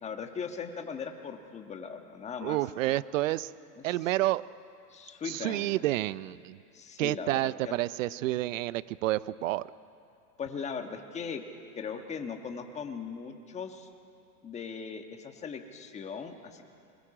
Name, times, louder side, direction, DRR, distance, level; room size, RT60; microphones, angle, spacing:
voice 1, 0.0-2.6 4.9-5.8 6.7-7.3 7.6-7.7 10.4-11.4 11.7-13.9 14.4-16.6, left 6 dB, 15° left, 5 dB, 1.4 m, -39 dB
voice 2, 2.4-3.5 3.8-4.5 5.2-6.6 7.0-9.7, right 16 dB, 55° right, 18 dB, 0.7 m, -29 dB
29.5 x 22.0 x 5.0 m, 2.5 s
hypercardioid pair, 135°, 49 cm